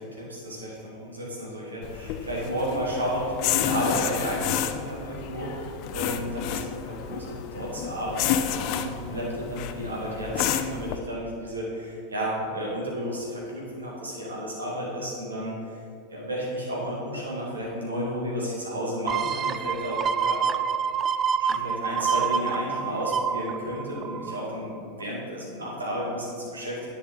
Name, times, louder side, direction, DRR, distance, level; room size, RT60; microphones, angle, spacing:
voice 1, 0.0-15.6 16.1-20.4 21.4-26.9, equal, 80° right, -4 dB, 2.2 m, -32 dB
sound 1, 1.8-11.0, left 10 dB, 50° left, 0.5 m, -30 dB
sound 2, 19.1-24.6 25.0-25.1, right 7 dB, 30° right, 0.3 m, -27 dB
10.0 x 5.7 x 4.0 m, 2.4 s
figure-of-eight pair, 85°, 0 cm